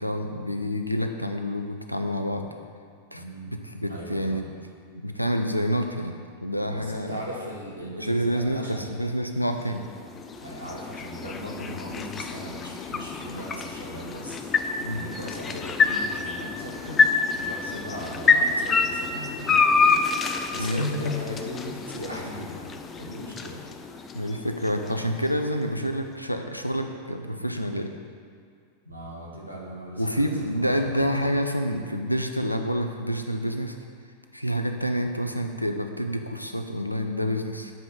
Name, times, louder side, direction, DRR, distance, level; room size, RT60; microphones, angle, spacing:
voice 1, 0.0-2.5 3.1-4.5 5.0-6.2 6.4-7.2 8.0-9.8 14.8-15.0 20.5-20.9 24.1-27.9 30.0-33.8 34.3-37.7, equal, 90° left, 5 dB, 0.6 m, -28 dB
voice 2, 3.1-3.5 3.9-4.5 6.7-8.9 10.4-14.4 14.9-17.0 17.4-20.0 20.5-22.7 22.9-23.6 28.8-30.3 30.8-31.4, equal, 90° right, -4 dB, 1.7 m, -37 dB
sound 1, 9.4-25.6, left 5 dB, 20° left, 0.6 m, -27 dB
7.8 x 5.1 x 7.4 m, 2.2 s
figure-of-eight pair, 90°, 0 cm